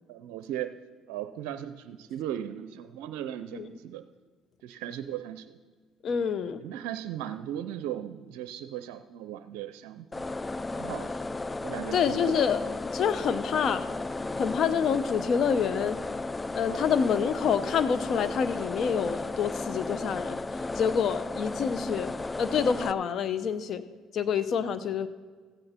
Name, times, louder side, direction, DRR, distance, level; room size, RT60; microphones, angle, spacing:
voice 1, 0.1-0.7 1.1-4.0 4.6-5.6 6.6-10.2 10.7-11.2 11.6-12.4, right 11 dB, 80° right, 11 dB, 0.5 m, -37 dB
voice 2, 6.0-6.6 11.9-12.6 12.9-13.9 14.4-16.0 16.5-20.4 20.8-22.1 22.4-23.8 24.1-25.1, left 7 dB, 60° left, 12 dB, 0.8 m, -27 dB
sound 1, 10.1-22.9, left 2 dB, 25° left, 0.4 m, -34 dB
15.0 x 9.1 x 4.3 m, 1.5 s
supercardioid pair, 65°, 0 cm